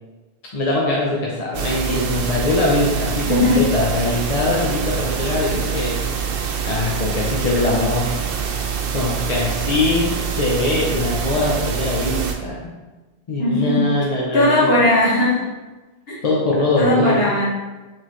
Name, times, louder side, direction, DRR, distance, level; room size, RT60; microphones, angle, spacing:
voice 1, 0.5-6.0 6.6-8.1 8.9-12.7 13.3-14.7 16.2-17.3, left 2 dB, 40° left, -4 dB, 0.7 m, -22 dB
sound 1, 1.5-12.3, right 7 dB, 65° right, 0.7 m, -25 dB
voice 2, 3.3-3.7 13.4-13.9 14.3-15.5 16.1-16.2 16.8-17.5, left 1 dB, 65° left, -7 dB, 1.7 m, -18 dB
4.6 x 3.7 x 3.0 m, 1.2 s
omnidirectional pair, 1.1 m